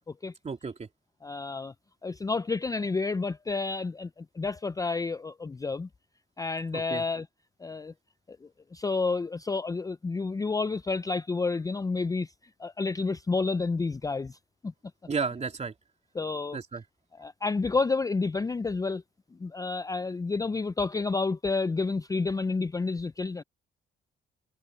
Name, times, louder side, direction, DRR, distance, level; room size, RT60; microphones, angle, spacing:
voice 1, 0.4-0.9 6.7-7.0 15.1-15.7 16.5-16.8, right 5 dB, 35° right, 3.2 m, -33 dB
voice 2, 1.2-1.7 2.0-5.9 6.4-7.3 7.6-7.9 8.4-12.3 12.6-14.4 14.6-14.7 16.1-16.6 17.2-19.0 19.4-23.4, left 4 dB, 15° left, 0.5 m, -30 dB
cardioid pair, 90°, 20 cm